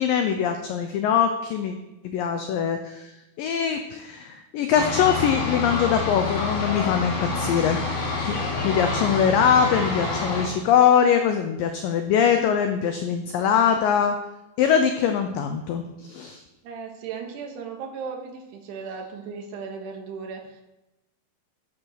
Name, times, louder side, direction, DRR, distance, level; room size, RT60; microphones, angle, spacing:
voice 1, 0.0-1.7 2.0-3.1 3.4-14.2 14.6-16.4, left 8 dB, 85° left, 6 dB, 1.9 m, -22 dB
sound 1, 4.7-10.5, left 3 dB, 55° left, 3.9 m, -27 dB
voice 2, 7.1-7.7 16.6-20.6, right 5 dB, 75° right, 3 dB, 3.4 m, -37 dB
11.0 x 6.8 x 6.4 m, 1.0 s
omnidirectional pair, 4.9 m